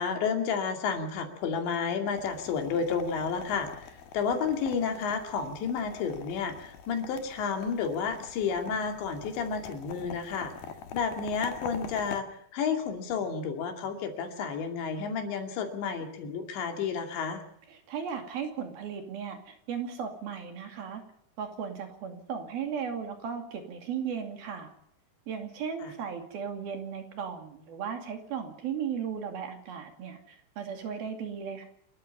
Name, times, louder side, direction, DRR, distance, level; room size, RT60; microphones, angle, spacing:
voice 1, 0.0-10.5 10.9-12.3 12.5-17.4 25.8-25.9, left 6 dB, 80° left, 5 dB, 4.7 m, -31 dB
sound 1, 2.1-12.2, left 7 dB, 65° left, 3.1 m, -45 dB
voice 2, 17.7-21.0 21.4-24.7 25.3-31.6, right 7 dB, 60° right, 5 dB, 4.2 m, -36 dB
28.5 x 13.5 x 7.1 m, 0.71 s
omnidirectional pair, 5.1 m